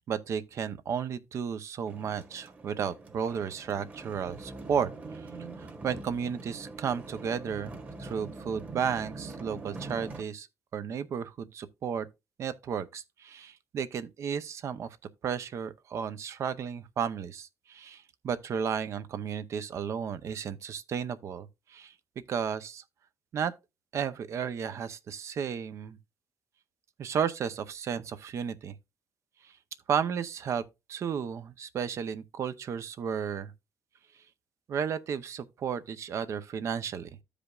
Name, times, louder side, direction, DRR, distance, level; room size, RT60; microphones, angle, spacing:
voice 1, 0.1-5.3 5.6-7.7 8.0-10.5 10.7-12.1 12.4-15.0 15.2-21.9 22.3-22.8 23.3-23.5 23.9-26.0 27.0-28.7 29.9-30.6 30.9-33.5 34.7-37.1, right 7 dB, 50° right, 0.7 m, -33 dB
sound 1, 1.8-10.2, right 3 dB, 25° right, 1.4 m, -44 dB
14.5 x 5.0 x 2.4 m
cardioid pair, 145°, 6 cm